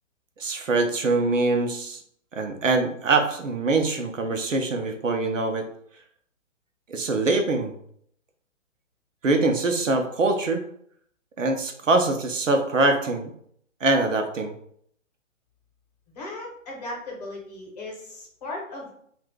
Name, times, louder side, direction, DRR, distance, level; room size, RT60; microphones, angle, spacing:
voice 1, 0.4-2.0 2.3-5.7 6.9-7.7 9.2-10.6 11.4-13.3 13.8-14.5, right 3 dB, 75° right, 5 dB, 0.7 m, -23 dB
voice 2, 16.1-18.9, left 2 dB, 30° left, -1 dB, 1.0 m, -37 dB
2.6 x 2.4 x 3.5 m, 0.66 s
figure-of-eight pair, 130°, 38 cm